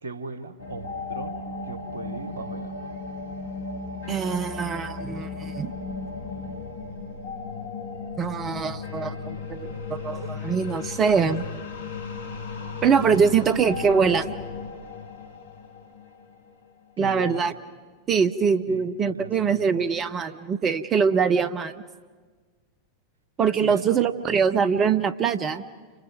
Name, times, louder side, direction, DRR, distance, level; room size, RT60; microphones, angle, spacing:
voice 1, 0.0-2.9 17.0-17.5 18.7-19.9 23.6-24.0, right 3 dB, 70° right, 12 dB, 1.4 m, -38 dB
sound 1, 0.6-16.8, left 4 dB, 65° left, 2.1 m, -35 dB
voice 2, 4.1-5.7 8.2-11.5 12.8-14.3 17.0-17.5 18.1-21.8 23.4-25.6, right 6 dB, 25° right, 12 dB, 0.8 m, -23 dB
30.0 x 26.5 x 5.2 m, 1.4 s
figure-of-eight pair, 90°, 0 cm